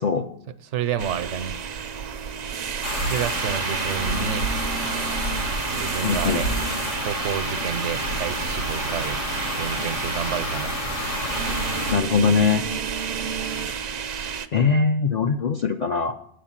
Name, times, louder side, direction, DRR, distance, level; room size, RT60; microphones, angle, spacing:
voice 1, 0.7-1.6 3.0-4.5 5.3-6.5 7.0-9.2 9.6-10.7, right 8 dB, 90° right, 11 dB, 1.0 m, -30 dB
sound 1, 1.0-14.5, right 7 dB, 60° right, 0.4 m, -30 dB
sound 2, 2.8-11.9, left 1 dB, 85° left, 1.5 m, -29 dB
voice 2, 6.0-6.4 11.9-12.7 14.5-16.1, left 5 dB, 60° left, 5 dB, 0.4 m, -21 dB
8.1 x 5.0 x 7.3 m, 0.72 s
omnidirectional pair, 1.2 m